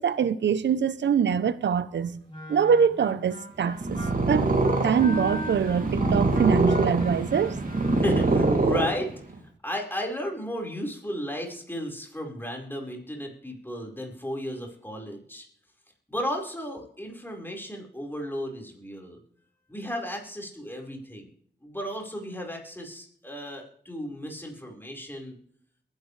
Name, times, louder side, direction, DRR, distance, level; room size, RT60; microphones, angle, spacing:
voice 1, 0.0-2.2 2.5-4.0 4.3-4.5 4.8-7.6, right 7 dB, 90° right, 0.7 m, -24 dB
Wind instrument woodwind instrument, 2.3-8.7, left 1 dB, 30° left, 7.9 m, -39 dB
Purr, 3.7-9.4, right 2 dB, 50° right, 2.8 m, -24 dB
voice 2, 8.0-9.1 9.6-15.4 16.1-19.2 19.7-21.3 21.6-25.3, equal, 10° left, 4.6 m, -34 dB
22.0 x 11.0 x 3.3 m
cardioid pair, 55°, 18 cm